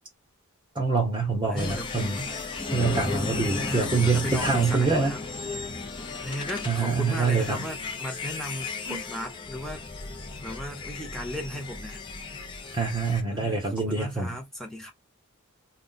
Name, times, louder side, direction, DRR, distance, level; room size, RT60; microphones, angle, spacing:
voice 1, 0.7-2.2 2.7-5.1 6.6-7.6 8.9-9.0 12.7-14.4, right 4 dB, 20° right, 0.9 m, -25 dB
voice 2, 1.5-2.4 3.6-5.2 6.2-9.9 10.4-12.0 13.3-14.9, left 1 dB, ahead, 0.9 m, -36 dB
sound 1, 1.6-13.2, left 4 dB, 25° left, 0.6 m, -34 dB
2.3 x 2.3 x 3.9 m
head